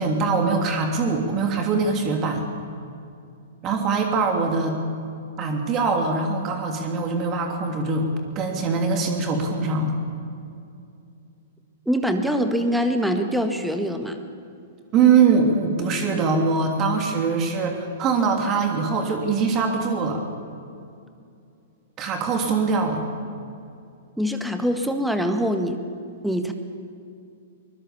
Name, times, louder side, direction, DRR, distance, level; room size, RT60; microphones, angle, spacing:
voice 1, 0.0-2.4 3.6-4.8 5.4-8.1 8.3-10.0 14.9-20.2 22.0-23.0, right 4 dB, 30° right, 3 dB, 3.0 m, -22 dB
voice 2, 11.9-14.2 24.2-25.8 26.2-26.5, equal, ahead, 6 dB, 1.7 m, -24 dB
23.5 x 22.0 x 7.0 m, 2.5 s
figure-of-eight pair, 110°, 0 cm